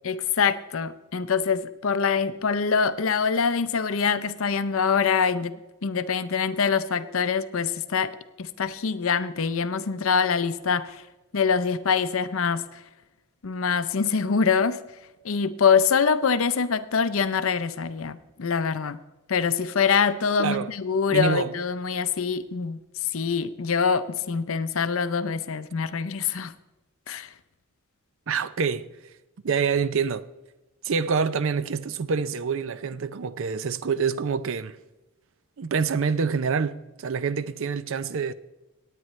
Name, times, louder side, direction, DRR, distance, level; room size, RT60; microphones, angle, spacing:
voice 1, 0.0-5.5 5.8-8.1 8.4-11.0 11.3-12.8 13.4-14.8 15.2-19.0 19.3-22.8 23.1-26.5 27.1-27.3, left 6 dB, 65° left, 0.6 m, -24 dB
voice 2, 20.4-20.7 21.1-21.5 28.3-28.9 29.4-30.3 30.8-34.8 35.6-38.3, right 5 dB, 60° right, 0.5 m, -26 dB
18.5 x 9.1 x 3.1 m
head